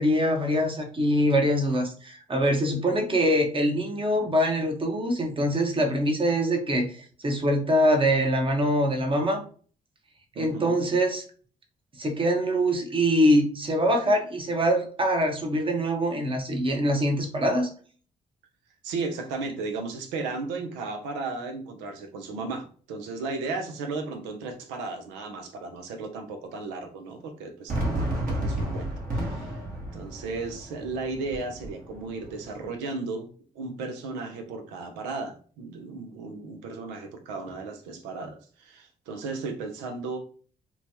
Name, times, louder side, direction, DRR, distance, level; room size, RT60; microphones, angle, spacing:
voice 1, 0.0-9.4 10.4-11.2 12.0-17.7, equal, 30° right, 4 dB, 0.9 m, -24 dB
voice 2, 10.3-10.8 18.8-29.6 29.9-33.3 33.5-40.2, right 3 dB, 90° right, 5 dB, 0.6 m, -35 dB
Fireworks, 27.7-32.7, right 1 dB, 55° right, 1.3 m, -32 dB
2.9 x 2.3 x 2.8 m, 0.43 s
supercardioid pair, 55°, 18 cm